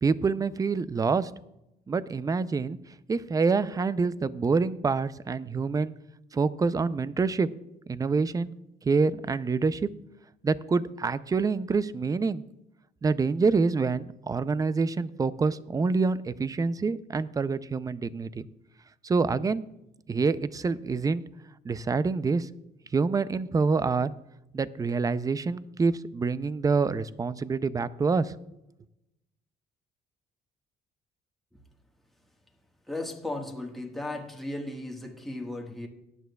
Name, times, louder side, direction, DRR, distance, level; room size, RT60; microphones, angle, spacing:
voice 1, 0.0-1.3 1.9-2.8 3.1-5.9 6.3-7.5 7.9-8.5 8.8-9.9 10.4-12.4 13.0-18.5 19.0-19.6 20.1-21.2 21.6-22.5 22.9-24.1 24.5-28.3, right 4 dB, 20° right, 0.5 m, -26 dB
voice 2, 32.9-35.9, left 2 dB, ahead, 1.5 m, -36 dB
17.5 x 10.5 x 2.3 m
cardioid pair, 110°, 17 cm